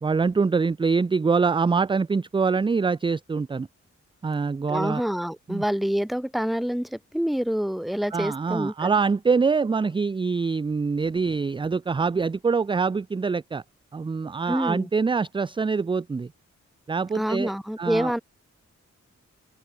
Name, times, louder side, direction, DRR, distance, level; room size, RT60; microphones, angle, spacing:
voice 1, 0.0-3.7 4.2-5.0 5.5-5.6 8.1-13.6 13.9-16.3 16.9-17.5 17.8-18.1, right 5 dB, 15° right, 0.3 m, -24 dB
voice 2, 4.7-8.9 14.5-14.9 17.1-18.2, equal, ahead, 0.7 m, -27 dB
open air
cardioid pair, 65°, 30 cm